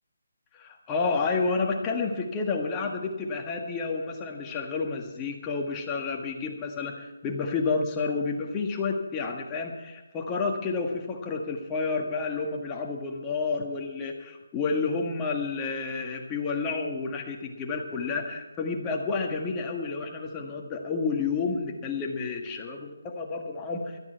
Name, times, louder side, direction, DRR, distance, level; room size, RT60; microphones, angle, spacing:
voice 1, 0.5-24.0, left 4 dB, 15° left, 1 dB, 1.8 m, -30 dB
17.0 x 13.0 x 4.5 m, 1.1 s
figure-of-eight pair, 150°, 0 cm